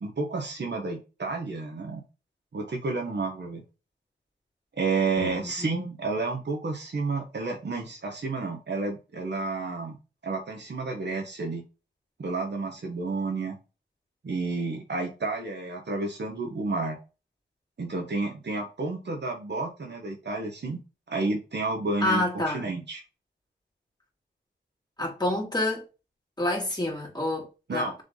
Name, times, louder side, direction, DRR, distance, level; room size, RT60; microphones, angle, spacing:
voice 1, 0.0-2.0 2.5-3.6 4.8-10.0 10.2-11.6 12.2-13.6 14.2-17.0 17.8-20.8 21.1-23.0 27.7-28.0, right 3 dB, 65° right, 1.5 m, -31 dB
voice 2, 5.2-5.8 22.0-22.6 25.0-25.8 26.4-28.0, left 1 dB, 20° left, 2.7 m, -28 dB
6.7 x 3.7 x 3.9 m
wide cardioid pair, 80°, 19 cm